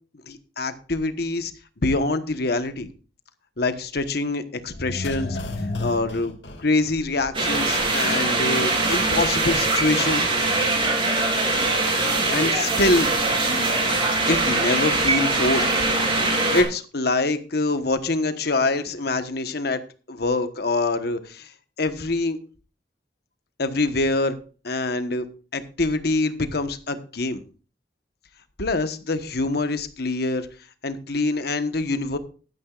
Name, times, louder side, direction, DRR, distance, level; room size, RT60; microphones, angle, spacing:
voice 1, 0.3-1.5 1.8-2.9 3.6-5.4 5.8-10.3 12.3-13.1 14.3-15.6 16.5-19.8 20.1-21.5 21.8-22.4 23.6-24.4 24.6-25.2 25.5-27.4 28.6-30.5 30.8-32.2, left 2 dB, 60° left, 10 dB, 1.2 m, -25 dB
sound 1, 4.7-7.6 7.9-8.0, left 2 dB, 75° left, 2.3 m, -32 dB
sound 2, 7.3-16.6, right 2 dB, 30° right, 3.6 m, -22 dB
16.0 x 12.0 x 2.5 m, 0.36 s
head